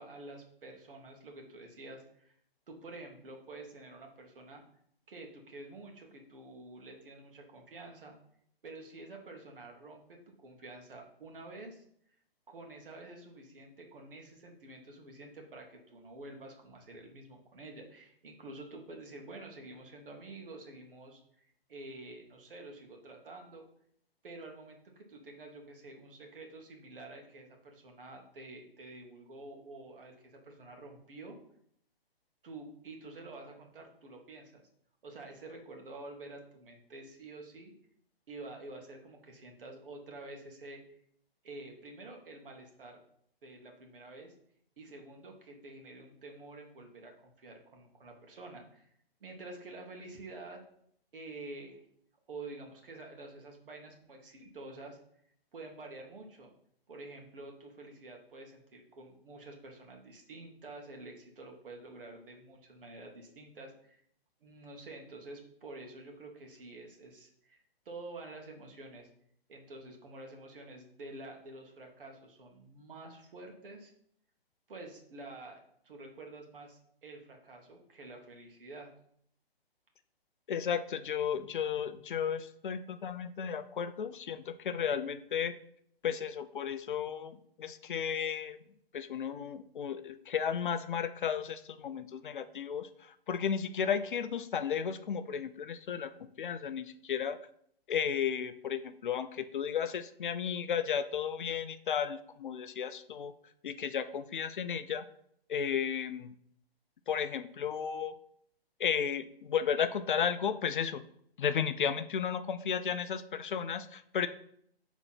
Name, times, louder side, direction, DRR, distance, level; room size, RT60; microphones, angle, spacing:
voice 1, 0.0-2.3 2.7-4.6 5.1-8.2 8.6-11.8 12.5-23.6 24.2-31.4 32.4-34.6 35.0-37.7 38.3-41.0 41.4-43.0 43.4-44.3 44.8-48.9 49.2-50.6 51.1-51.8 52.3-55.0 55.5-56.5 56.9-64.0 64.4-69.1 69.5-73.9 74.7-78.9, right 2 dB, 60° right, 2 dB, 2.0 m, -49 dB
voice 2, 80.5-85.5 86.0-88.6 88.9-97.4 97.9-103.3 103.6-105.0 105.5-106.3 107.1-108.1 108.8-111.0 111.4-114.3, left 7 dB, 55° left, 12 dB, 0.5 m, -34 dB
6.0 x 4.0 x 5.9 m, 0.68 s
figure-of-eight pair, 135°, 31 cm